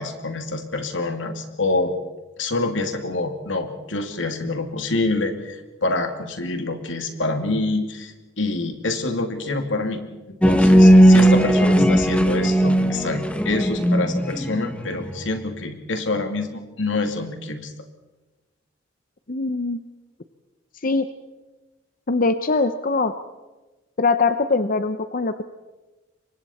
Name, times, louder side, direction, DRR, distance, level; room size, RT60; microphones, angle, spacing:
voice 1, 0.0-1.9 2.4-10.0 10.4-17.7, left 2 dB, 85° left, 5 dB, 2.6 m, -26 dB
sound 1, 10.4-15.3, equal, 5° left, 1.3 m, -16 dB
voice 2, 19.3-19.8 20.8-21.1 22.1-23.1 24.0-25.4, left 3 dB, 45° left, 10 dB, 0.8 m, -22 dB
28.0 x 24.0 x 4.3 m, 1.1 s
head